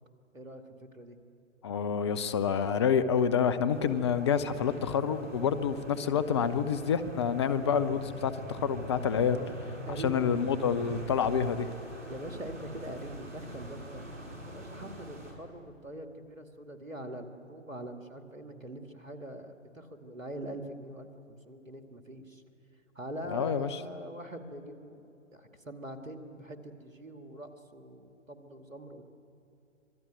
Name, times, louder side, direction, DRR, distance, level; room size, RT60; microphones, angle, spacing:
voice 1, 0.3-1.2 9.3-9.5 9.9-10.4 12.1-14.0 14.4-22.4 22.9-25.0 25.3-29.0, right 1 dB, 90° right, 6 dB, 2.5 m, -43 dB
voice 2, 1.6-9.4 10.0-11.7 23.3-23.7, left 7 dB, 20° left, 12 dB, 0.6 m, -28 dB
sound 1, 3.7-15.3, equal, 70° right, 6.2 m, -43 dB
26.0 x 21.0 x 9.2 m, 2.7 s
figure-of-eight pair, 130°, 38 cm